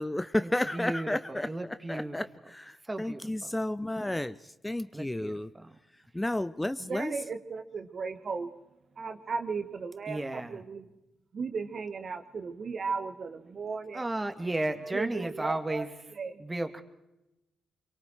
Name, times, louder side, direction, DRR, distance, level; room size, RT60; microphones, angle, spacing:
voice 1, 0.0-1.5 1.9-4.3 4.6-5.5 6.1-7.1, left 1 dB, 15° left, 13 dB, 0.7 m, -32 dB
voice 2, 0.7-2.2 2.9-3.5 4.9-5.8 10.1-10.6 13.9-15.9 16.4-16.8, right 2 dB, 20° right, 7 dB, 2.2 m, -34 dB
voice 3, 6.9-8.5 9.0-10.9 11.3-14.0 14.4-14.5 14.9-15.9 16.2-16.4, right 5 dB, 55° right, 8 dB, 1.5 m, -36 dB
25.5 x 23.0 x 4.6 m, 0.94 s
hypercardioid pair, 45°, 0 cm